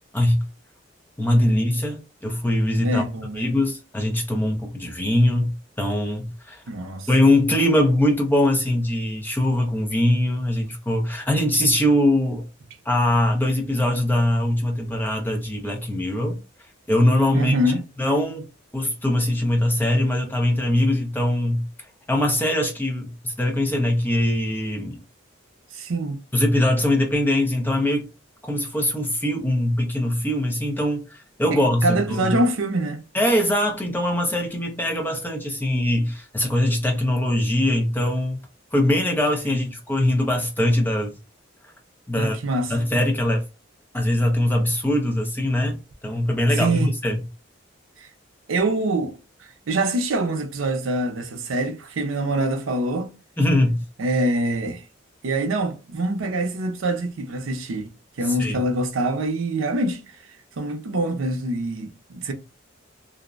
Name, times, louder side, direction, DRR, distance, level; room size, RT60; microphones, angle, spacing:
voice 1, 0.1-0.4 1.2-3.0 3.3-6.6 7.1-12.4 12.9-16.4 16.9-17.5 18.0-18.5 18.7-21.6 22.1-25.0 26.3-28.1 28.4-32.3 33.1-38.4 38.7-41.2 42.1-42.4 42.7-43.4 43.9-45.8 46.0-47.2 53.4-53.8 58.2-58.6, left 1 dB, 10° left, 0.5 m, -22 dB
voice 2, 2.8-3.5 6.7-7.1 17.3-17.8 25.7-26.2 31.5-33.0 42.1-42.7 46.5-46.9 48.0-48.1 48.5-49.2 49.7-53.1 54.0-54.8 55.2-57.9 58.2-60.0 60.6-62.3, right 1 dB, 90° right, 0.5 m, -24 dB
2.5 x 2.0 x 2.4 m
head